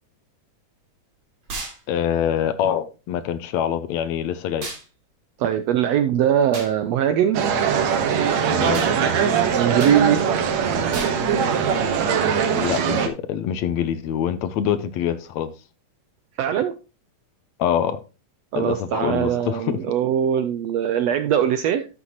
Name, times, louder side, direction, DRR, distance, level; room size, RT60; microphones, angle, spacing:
sound 1, 1.5-1.8 4.6-4.8 6.5-6.7 8.7-8.9 9.8-10.0 10.9-11.2, right 3 dB, 45° right, 3.7 m, -33 dB
voice 1, 1.9-4.7 8.5-8.9 12.5-15.5 17.6-18.0 18.6-19.8, left 9 dB, 75° left, 12 dB, 1.8 m, -25 dB
voice 2, 5.4-7.4 9.5-10.2 16.4-16.7 18.5-21.9, right 9 dB, 80° right, 10 dB, 1.5 m, -21 dB
sound 2, 7.3-13.1, right 7 dB, 65° right, 2.4 m, -21 dB
12.5 x 7.2 x 2.9 m, 0.31 s
omnidirectional pair, 3.6 m